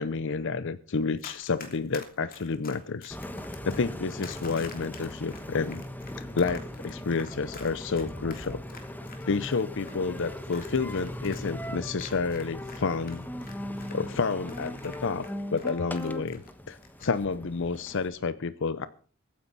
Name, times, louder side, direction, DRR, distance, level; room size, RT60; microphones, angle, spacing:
voice 1, 0.0-3.2 3.6-5.8 6.2-8.6 9.2-13.2 13.9-18.9, left 4 dB, 60° left, 0.6 m, -30 dB
Run, 1.2-12.8 13.1-16.5 16.8-17.1, left 5 dB, 40° left, 3.0 m, -47 dB
Engine, 3.1-18.1, equal, 10° left, 1.2 m, -39 dB
22.5 x 9.8 x 4.1 m
head